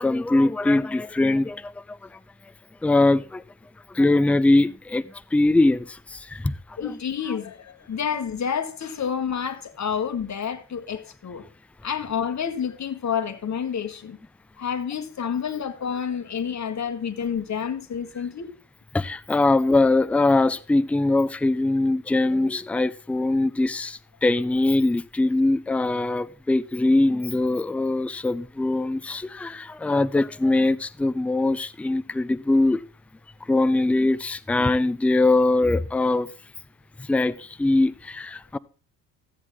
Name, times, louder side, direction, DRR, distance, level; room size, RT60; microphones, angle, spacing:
voice 1, 0.0-2.0 2.8-3.4 3.9-5.1 5.3-6.5 6.8-7.0 18.9-32.8 33.5-36.3 37.1-38.6, left 2 dB, 5° left, 0.5 m, -22 dB
voice 2, 6.8-11.4 11.8-14.2 14.6-18.5, left 7 dB, 35° left, 1.7 m, -29 dB
14.0 x 8.4 x 3.6 m
hypercardioid pair, 60°, 47 cm